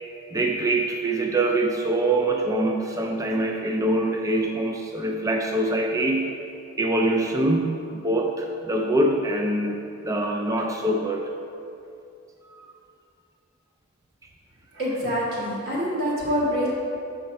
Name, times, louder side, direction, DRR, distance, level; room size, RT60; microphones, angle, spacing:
voice 1, 0.3-6.3 6.8-9.8 10.0-11.3 12.5-12.6, right 1 dB, 15° right, 2 dB, 0.3 m, -24 dB
voice 2, 14.7-16.7, equal, 50° right, -8 dB, 1.7 m, -25 dB
6.8 x 4.5 x 5.2 m, 2.6 s
head